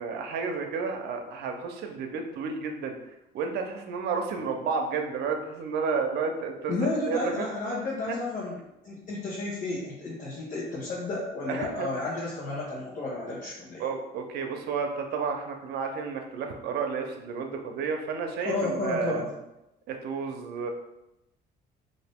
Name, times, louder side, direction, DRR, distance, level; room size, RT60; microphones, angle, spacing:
voice 1, 0.0-7.5 8.1-8.2 11.5-11.9 13.8-19.3 19.9-20.7, right 5 dB, 75° right, 4 dB, 0.6 m, -31 dB
voice 2, 6.7-8.6 8.8-13.8 18.4-19.3, left 2 dB, 55° left, -6 dB, 1.0 m, -32 dB
4.0 x 2.6 x 3.5 m, 0.92 s
cardioid pair, 110°, 17 cm